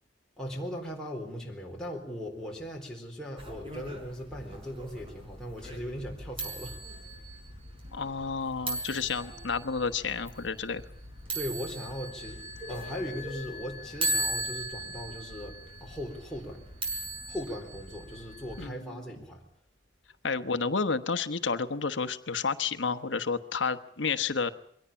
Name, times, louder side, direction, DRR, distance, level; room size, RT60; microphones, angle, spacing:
voice 1, 0.4-7.0 11.3-12.4 12.7-16.7 17.3-19.4, equal, 5° left, -2 dB, 4.0 m, -39 dB
sound 1, 3.4-18.7, right 1 dB, 30° right, 5.6 m, -38 dB
voice 2, 7.9-10.8 18.6-19.0 20.2-24.5, left 5 dB, 70° left, 10 dB, 1.2 m, -31 dB
23.0 x 17.5 x 8.7 m, 0.69 s
head